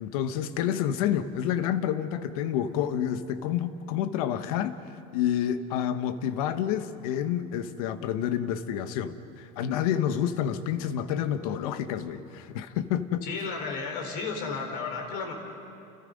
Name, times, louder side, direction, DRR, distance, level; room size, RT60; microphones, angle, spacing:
voice 1, 0.0-4.8 5.1-13.2, left 10 dB, 80° left, 11 dB, 1.4 m, -29 dB
voice 2, 13.2-15.3, left 4 dB, 55° left, 3 dB, 4.6 m, -33 dB
29.5 x 29.0 x 5.4 m, 2.6 s
cardioid pair, 170°, 18 cm